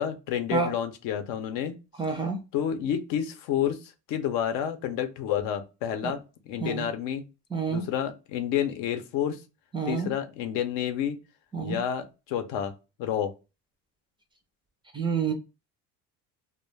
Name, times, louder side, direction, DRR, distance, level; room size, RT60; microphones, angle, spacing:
voice 1, 0.0-1.7 2.5-7.2 7.7-9.4 9.9-11.2 11.6-12.7 13.0-13.3, left 9 dB, 75° left, 0.6 m, -29 dB
voice 2, 2.0-2.4 6.0-6.1 6.6-6.9 7.5-7.8 9.7-10.1 11.5-11.8 14.9-15.3, right 5 dB, 15° right, 0.3 m, -28 dB
2.2 x 2.1 x 3.2 m
cardioid pair, 130°, 34 cm